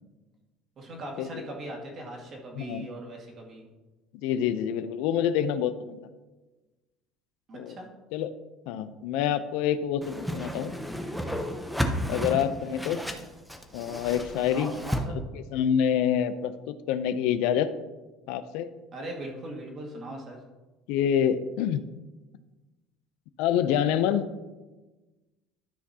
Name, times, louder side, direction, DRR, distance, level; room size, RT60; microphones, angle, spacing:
voice 1, 0.8-3.7 7.5-7.9 14.5-15.1 18.9-20.4, right 1 dB, 35° right, 0 dB, 1.8 m, -39 dB
voice 2, 2.6-2.9 4.1-6.0 7.5-7.8 8.1-8.3 8.7-10.8 12.1-13.0 13.7-14.7 15.3-17.7 18.3-18.7 20.9-21.8 23.4-24.3, left 9 dB, 75° left, 12 dB, 0.5 m, -27 dB
Whoosh swoosh swish, 10.0-15.0, equal, ahead, 0.7 m, -33 dB
12.5 x 5.9 x 2.8 m, 1.2 s
cardioid pair, 145°, 0 cm